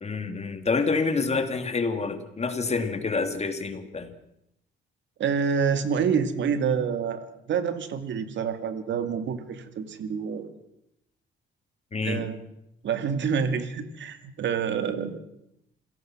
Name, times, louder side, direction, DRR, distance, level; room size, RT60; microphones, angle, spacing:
voice 1, 0.0-4.1 11.9-12.3, left 4 dB, 35° left, 8 dB, 2.7 m, -27 dB
voice 2, 5.2-10.5 12.0-12.4 12.8-15.2, right 6 dB, 70° right, 9 dB, 2.4 m, -27 dB
27.5 x 17.0 x 6.2 m, 0.81 s
cardioid pair, 90°, 20 cm